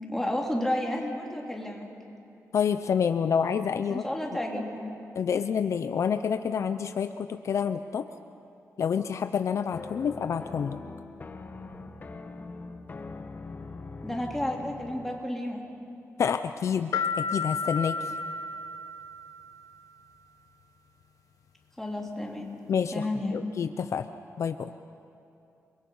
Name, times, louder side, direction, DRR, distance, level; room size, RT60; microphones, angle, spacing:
voice 1, 0.1-1.9 3.9-4.9 14.0-15.6 21.8-22.5 22.9-23.5, left 1 dB, 5° left, -1 dB, 2.9 m, -31 dB
voice 2, 2.5-4.0 5.1-8.1 8.8-10.8 16.2-18.0 22.7-24.1 24.4-24.7, left 7 dB, 60° left, 9 dB, 0.6 m, -28 dB
sound 1, 9.7-15.3, left 3 dB, 35° left, 1.3 m, -42 dB
sound 2, 16.9-19.6, left 4 dB, 85° left, 1.1 m, -32 dB
29.5 x 22.0 x 5.6 m, 2.8 s
wide cardioid pair, 145°, 6 cm